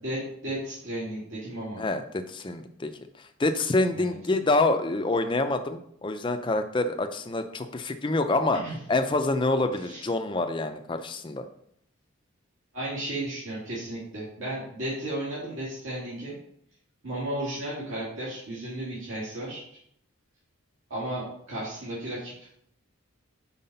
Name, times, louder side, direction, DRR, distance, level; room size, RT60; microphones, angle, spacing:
voice 1, 0.0-1.8 3.9-4.1 8.6-8.8 9.8-10.1 12.7-16.4 17.0-19.6 20.9-22.6, right 1 dB, 70° right, -8 dB, 2.2 m, -34 dB
voice 2, 1.8-2.9 3.2-8.6 8.9-11.5, left 2 dB, 25° left, 7 dB, 0.5 m, -26 dB
5.7 x 4.6 x 5.4 m, 0.69 s
head